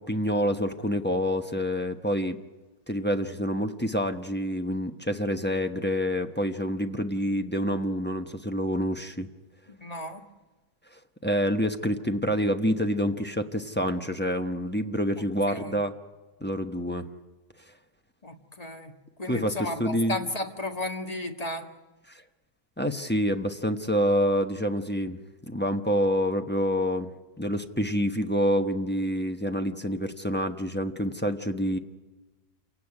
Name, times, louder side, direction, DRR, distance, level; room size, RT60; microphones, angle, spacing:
voice 1, 0.0-2.4 2.9-9.3 11.2-15.9 16.4-17.1 19.3-20.2 22.1-22.2 22.8-25.2 25.5-27.1 27.4-31.8, equal, 10° left, 5 dB, 0.9 m, -27 dB
voice 2, 9.7-10.2 15.1-15.8 18.2-18.9 19.2-21.7, left 2 dB, 25° left, 4 dB, 1.7 m, -34 dB
28.0 x 17.0 x 9.9 m, 1.2 s
omnidirectional pair, 1.7 m